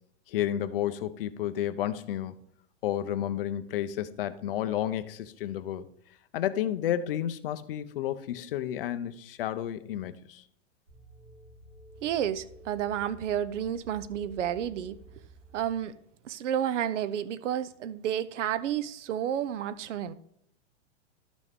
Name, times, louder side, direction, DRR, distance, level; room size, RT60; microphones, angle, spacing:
voice 1, 0.3-2.3 2.8-5.9 6.3-10.4, left 11 dB, 50° left, 0.6 m, -31 dB
sound 1, 10.9-15.8, right 1 dB, 50° right, 4.4 m, -51 dB
voice 2, 12.0-15.0 15.5-15.9 16.2-20.1, right 10 dB, 80° right, 0.7 m, -31 dB
12.0 x 6.1 x 3.6 m
supercardioid pair, 175°, 36 cm